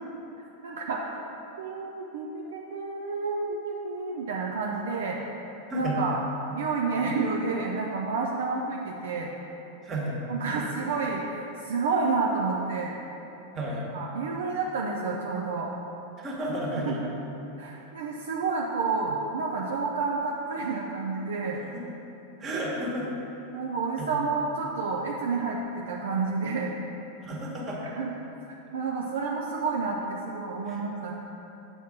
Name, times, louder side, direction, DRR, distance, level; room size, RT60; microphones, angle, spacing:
voice 1, 0.6-1.2 1.6-5.2 5.7-6.2 6.5-9.3 10.3-13.0 13.9-15.7 16.9-17.0 17.6-21.6 23.5-25.6 25.9-26.7 28.0-28.1 28.7-31.1, right 4 dB, 60° right, -1 dB, 0.6 m, -29 dB
voice 2, 5.7-6.0 9.8-10.2 13.5-13.8 16.2-17.0 21.6-21.8 22.4-23.1 24.0-24.1 27.2-27.9 30.7-30.8, right 1 dB, 25° right, -3 dB, 1.5 m, -32 dB
7.1 x 4.3 x 6.0 m, 3.0 s
figure-of-eight pair, 90°, 0 cm